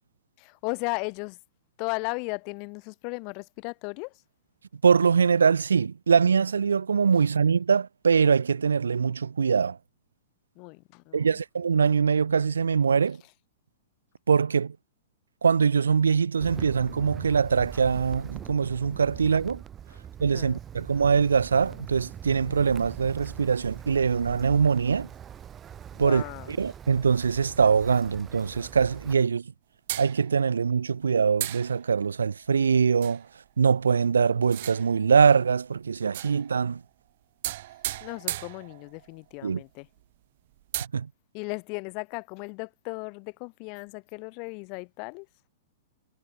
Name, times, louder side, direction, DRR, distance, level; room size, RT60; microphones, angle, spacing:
voice 1, 0.4-1.4 1.8-4.1 10.6-11.2 20.3-20.6 25.9-26.5 38.0-39.9 41.3-45.3, left 35 dB, 45° left, 0.7 m, -36 dB
voice 2, 4.8-9.8 11.1-13.2 14.3-14.8 15.4-19.6 20.2-25.1 26.0-29.5 30.0-33.2 33.6-36.8 39.4-39.6 40.9-41.1, right 6 dB, 90° right, 0.3 m, -23 dB
Wind, 16.4-29.1, right 9 dB, 25° right, 0.5 m, -42 dB
sound 1, 29.9-30.7 31.4-32.2 33.0-33.3 34.4-35.1 36.0-36.7 37.4-39.1 39.6-39.7 40.0-40.1 40.6-40.9, right 15 dB, 60° right, 1.0 m, -36 dB
hypercardioid pair, 120°, 0 cm